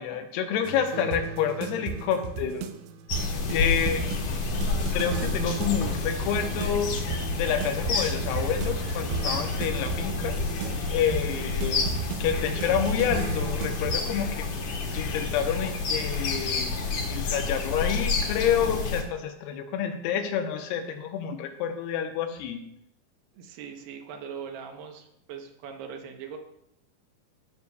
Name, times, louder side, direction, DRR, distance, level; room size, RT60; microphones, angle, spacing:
voice 1, 0.0-2.7 3.5-4.2 4.9-6.9 7.4-10.4 10.9-11.8 12.2-14.5 14.9-16.7 17.1-22.6, left 8 dB, 90° left, 5 dB, 2.9 m, -28 dB
sound 1, 0.6-14.0, right 6 dB, 90° right, 2.6 m, -34 dB
sound 2, 3.1-19.0, left 4 dB, 60° left, 2.5 m, -29 dB
voice 2, 23.3-26.4, right 7 dB, 70° right, 4 dB, 2.3 m, -41 dB
16.5 x 6.9 x 2.3 m, 0.79 s
omnidirectional pair, 4.6 m